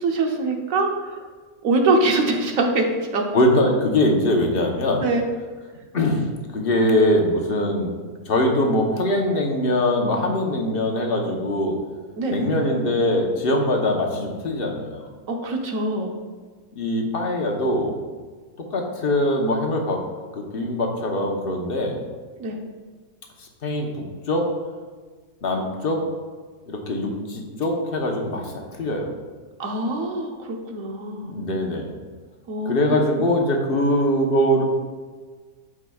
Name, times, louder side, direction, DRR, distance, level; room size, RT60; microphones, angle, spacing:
voice 1, 0.0-1.2 1.6-2.9 3.1-3.2 5.0-5.2 12.2-12.4 15.3-16.1 22.4-22.6 29.6-31.3 32.5-33.2, right 2 dB, 65° right, 2 dB, 1.3 m, -23 dB
voice 2, 3.3-5.1 5.9-6.2 6.5-7.9 8.3-11.8 12.3-15.1 16.8-17.9 18.7-20.0 20.3-22.0 23.4-24.4 25.4-26.0 26.7-29.1 31.3-31.9 32.6-34.6, left 1 dB, 45° left, 1 dB, 1.0 m, -22 dB
12.5 x 4.9 x 2.3 m, 1.5 s
omnidirectional pair, 1.5 m